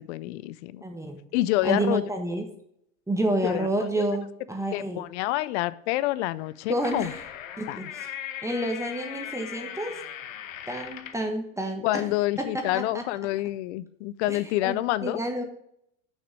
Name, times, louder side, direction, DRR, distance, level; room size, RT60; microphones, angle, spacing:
voice 1, 0.0-0.8 1.3-2.0 3.4-3.7 4.0-4.1 4.7-7.1 7.7-7.9 11.8-15.2, left 17 dB, 60° left, 17 dB, 0.6 m, -28 dB
voice 2, 0.8-1.2 1.6-2.4 3.1-5.0 6.7-7.2 7.6-8.1 8.4-10.0 10.7-12.0 12.4-13.0 14.3-15.4, right 1 dB, 5° right, 3 dB, 1.3 m, -29 dB
sound 1, 6.4-11.3, left 10 dB, 75° left, 1.0 m, -39 dB
6.6 x 6.0 x 7.5 m, 0.73 s
hypercardioid pair, 105°, 39 cm